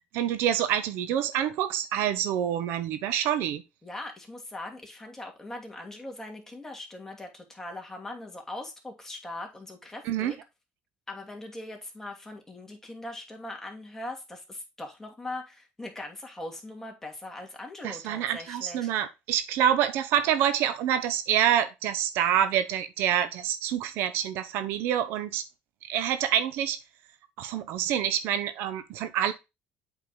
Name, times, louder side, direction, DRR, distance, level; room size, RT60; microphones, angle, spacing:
voice 1, 0.1-3.6 10.0-10.3 17.8-25.4 25.9-26.8 27.4-29.3, right 10 dB, 75° right, 1.0 m, -27 dB
voice 2, 3.8-10.4 11.1-18.9, left 2 dB, 10° left, 2.6 m, -40 dB
8.2 x 5.1 x 3.9 m
supercardioid pair, 95°, 4 cm